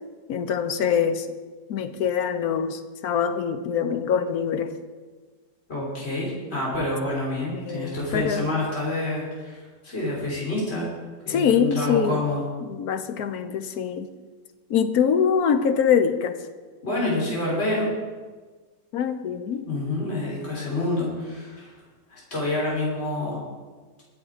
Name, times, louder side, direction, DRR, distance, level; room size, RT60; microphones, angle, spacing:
voice 1, 0.3-1.3 1.7-4.7 7.5-8.5 11.3-12.2 12.7-14.1 14.7-16.4 18.9-19.7, left 7 dB, 65° left, 10 dB, 1.2 m, -24 dB
voice 2, 5.7-10.9 11.2-12.4 16.8-17.9 19.6-21.7 22.1-23.4, left 2 dB, 35° left, -5 dB, 4.0 m, -27 dB
21.5 x 7.3 x 4.8 m, 1.4 s
omnidirectional pair, 1.9 m